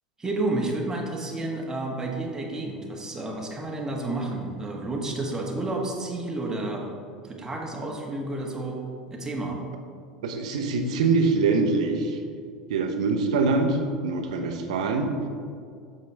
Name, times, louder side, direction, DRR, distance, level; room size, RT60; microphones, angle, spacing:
voice 1, 0.2-6.9 7.2-8.9 9.1-9.6, right 2 dB, 15° right, -1 dB, 1.4 m, -30 dB
voice 2, 10.2-12.2 12.7-15.1, right 4 dB, 65° right, 4 dB, 0.9 m, -24 dB
8.1 x 6.6 x 3.4 m, 2.2 s
figure-of-eight pair, 75°, 4 cm